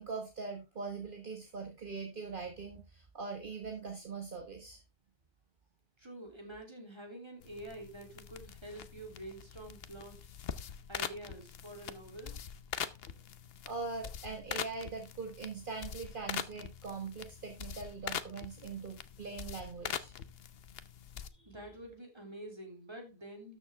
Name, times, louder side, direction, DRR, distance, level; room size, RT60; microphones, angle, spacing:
voice 1, 0.0-4.8 13.6-20.1 21.4-21.5, right 4 dB, 55° right, 3 dB, 1.6 m, -42 dB
voice 2, 6.0-10.2 10.6-12.4 21.5-23.6, right 1 dB, 25° right, 2 dB, 3.1 m, -47 dB
sound 1, 7.4-21.3, left 8 dB, 75° left, 1.0 m, -43 dB
12.5 x 6.8 x 3.4 m, 0.26 s
omnidirectional pair, 1.0 m